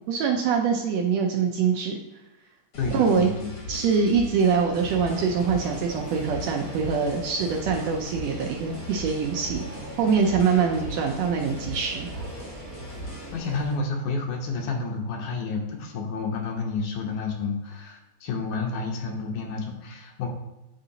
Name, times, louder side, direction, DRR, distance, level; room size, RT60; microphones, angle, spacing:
voice 1, 0.1-2.0 2.9-3.3 3.7-9.6 10.0-12.1, right 6 dB, 80° right, 2 dB, 1.5 m, -24 dB
sound 1, 2.7-13.4, left 1 dB, 50° left, 1.1 m, -39 dB
voice 2, 2.8-3.5 13.3-20.3, left 4 dB, 80° left, 1 dB, 2.3 m, -30 dB
sound 2, 4.7-13.8, right 1 dB, 40° right, 0.9 m, -41 dB
9.8 x 3.9 x 2.8 m, 1.0 s
omnidirectional pair, 3.6 m